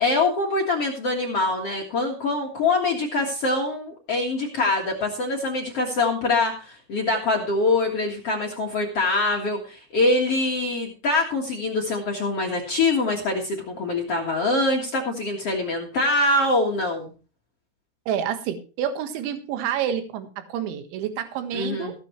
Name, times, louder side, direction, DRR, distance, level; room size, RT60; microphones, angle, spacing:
voice 1, 0.0-17.1 21.5-21.9, left 2 dB, 65° left, 0 dB, 1.5 m, -24 dB
voice 2, 18.1-21.9, right 9 dB, 70° right, 8 dB, 3.7 m, -28 dB
15.5 x 12.0 x 3.2 m, 0.35 s
omnidirectional pair, 5.7 m